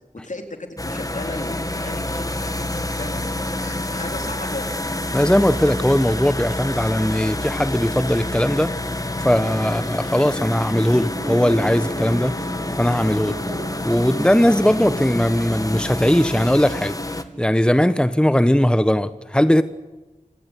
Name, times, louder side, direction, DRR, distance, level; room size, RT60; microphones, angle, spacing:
voice 1, 0.2-4.7, left 2 dB, 70° left, 5 dB, 4.2 m, -35 dB
sound 1, 0.8-17.2, left 1 dB, 25° left, 2.1 m, -28 dB
voice 2, 5.1-8.7 9.2-12.3 12.8-13.4 13.8-16.9 17.4-19.6, equal, 5° left, 12 dB, 1.1 m, -19 dB
sound 2, 11.2-16.2, right 2 dB, 60° right, 2.3 m, -37 dB
29.0 x 17.5 x 8.4 m, 1.1 s
wide cardioid pair, 45°, 13 cm